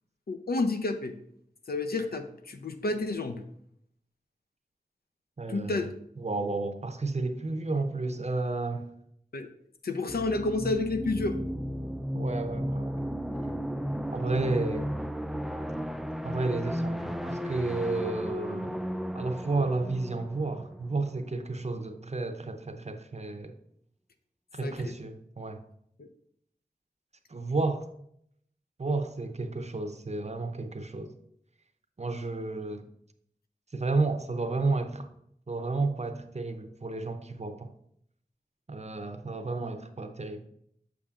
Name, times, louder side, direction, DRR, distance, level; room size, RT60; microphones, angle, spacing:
voice 1, 0.3-1.2 1.7-3.4 5.5-5.9 9.3-9.5 9.8-11.4 24.6-24.9 26.0-26.1, left 2 dB, 80° left, 0.6 m, -30 dB
voice 2, 5.4-5.7 6.2-9.0 12.1-13.0 14.1-14.9 16.2-18.7 19.1-23.5 24.5-25.6 27.3-27.9 28.8-31.1 32.0-32.8 33.7-35.1 35.5-37.7 38.7-40.4, right 3 dB, 45° right, 0.7 m, -32 dB
sound 1, 10.1-21.6, equal, ahead, 0.3 m, -34 dB
7.0 x 6.2 x 2.4 m
wide cardioid pair, 50°, 16 cm